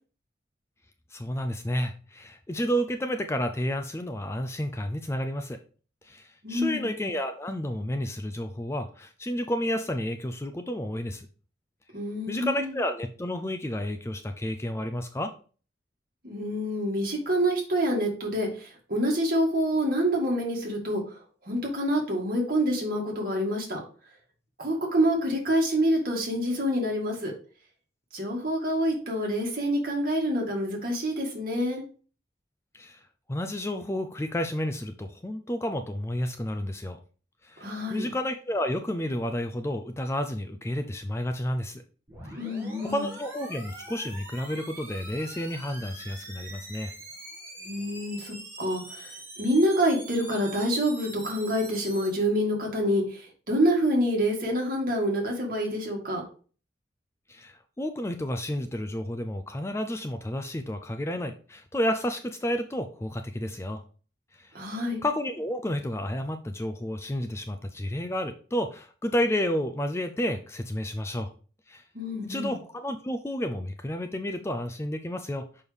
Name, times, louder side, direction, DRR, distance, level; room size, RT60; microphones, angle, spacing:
voice 1, 1.1-5.6 6.0-11.3 12.3-15.3 32.7-33.0 33.3-37.0 37.4-41.8 42.9-46.9 57.3-63.8 64.3-64.6 65.0-71.3 71.7-71.8 72.3-75.4, equal, 15° left, 7 dB, 0.4 m, -31 dB
voice 2, 6.4-6.9 11.9-12.8 16.2-21.0 21.4-23.8 24.6-27.3 28.1-31.8 37.6-38.1 42.4-43.1 47.6-56.2 64.5-65.0 71.9-72.6, equal, 50° right, -1 dB, 2.0 m, -27 dB
sound 1, 42.1-52.1, right 1 dB, 15° right, 1.9 m, -44 dB
6.2 x 5.4 x 3.4 m, 0.39 s
head